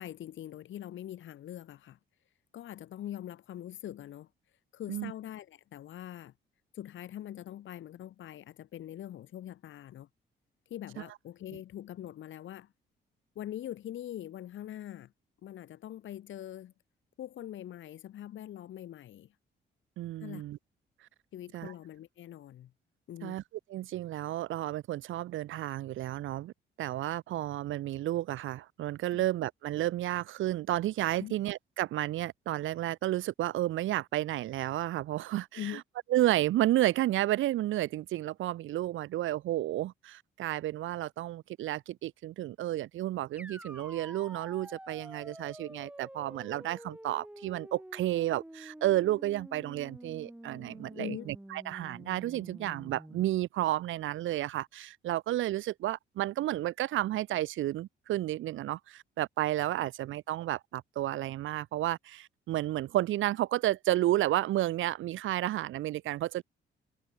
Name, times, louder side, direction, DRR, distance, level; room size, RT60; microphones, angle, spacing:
voice 1, 0.0-2.0 2.5-4.3 4.7-6.3 6.7-10.1 10.7-12.7 13.3-15.1 15.4-16.7 17.2-19.3 20.2-20.4 21.3-22.7 23.1-23.4 29.1-29.3 31.2-31.3 35.5-35.8 50.9-51.3, left 12 dB, 75° left, 6.4 m, -43 dB
voice 2, 20.0-20.6 21.5-21.7 23.2-23.4 23.7-26.5 26.8-35.6 36.1-66.4, right 14 dB, 80° right, 1.3 m, -31 dB
sound 1, 43.4-53.3, right 1 dB, 5° right, 6.4 m, -48 dB
cardioid pair, 90°, 20 cm